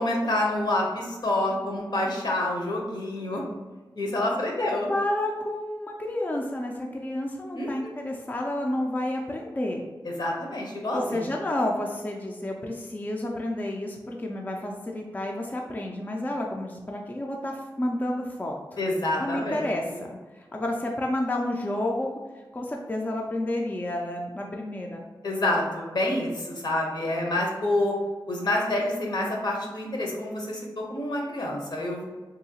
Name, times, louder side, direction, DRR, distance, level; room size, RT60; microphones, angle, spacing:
voice 1, 0.0-3.4 3.9-4.9 7.5-7.9 10.0-11.2 18.8-20.0 25.2-27.9 28.3-32.0, left 1 dB, 60° left, -1 dB, 0.8 m, -28 dB
voice 2, 4.6-9.8 10.9-18.6 19.2-22.1 22.5-25.0, left 1 dB, 20° left, 0 dB, 0.4 m, -30 dB
2.9 x 2.7 x 2.8 m, 1.3 s
cardioid pair, 55°, 8 cm